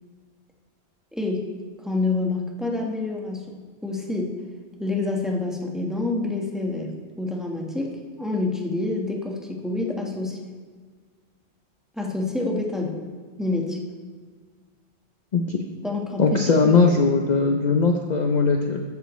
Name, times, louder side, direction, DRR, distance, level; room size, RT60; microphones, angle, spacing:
voice 1, 1.1-1.5 1.8-3.6 3.8-4.4 4.8-10.4 12.0-13.0 13.4-13.8 15.8-17.0, left 2 dB, ahead, -1 dB, 1.3 m, -27 dB
voice 2, 16.2-18.8, left 4 dB, 50° left, 3 dB, 0.7 m, -20 dB
13.5 x 9.4 x 3.2 m, 1.6 s
omnidirectional pair, 1.1 m